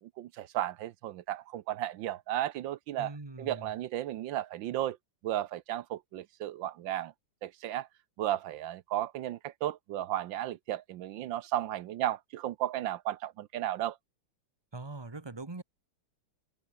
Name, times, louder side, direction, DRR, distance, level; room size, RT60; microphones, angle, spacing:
voice 1, 0.0-3.1 3.4-5.0 5.2-7.1 7.4-7.9 8.2-14.0, right 13 dB, 70° right, 1.4 m, -34 dB
voice 2, 3.0-3.7 14.7-15.6, right 3 dB, 15° right, 1.3 m, -42 dB
open air
omnidirectional pair, 2.3 m